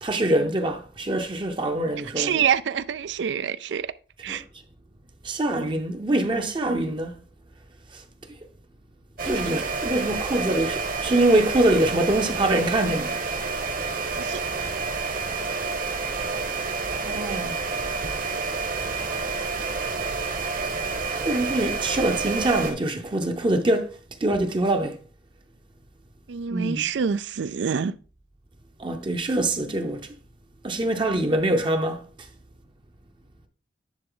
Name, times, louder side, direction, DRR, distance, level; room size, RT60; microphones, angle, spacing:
voice 1, 0.0-2.4 4.3-4.4 5.2-7.2 7.9-8.0 9.2-13.2 17.0-17.6 21.2-25.0 26.5-26.9 28.8-30.1 30.6-32.3, right 1 dB, 25° right, 0.6 m, -24 dB
voice 2, 2.2-3.9 4.2-4.4 14.2-14.4 26.3-27.9, right 7 dB, 90° right, 0.4 m, -26 dB
sound 1, 9.2-22.7, right 4 dB, 50° right, 1.2 m, -29 dB
10.0 x 3.8 x 3.8 m
head